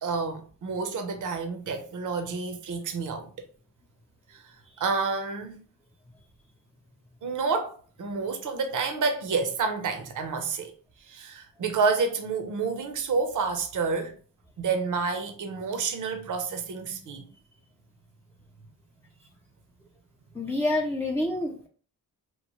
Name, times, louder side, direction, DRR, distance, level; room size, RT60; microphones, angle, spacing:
voice 1, 0.0-3.3 4.3-4.5 4.8-5.6 7.2-10.7 11.1-14.1 14.6-17.3, right 4 dB, 55° right, 0.7 m, -29 dB
voice 2, 20.3-21.7, left 1 dB, 5° left, 0.4 m, -27 dB
3.0 x 2.0 x 2.9 m
cardioid pair, 60°, 38 cm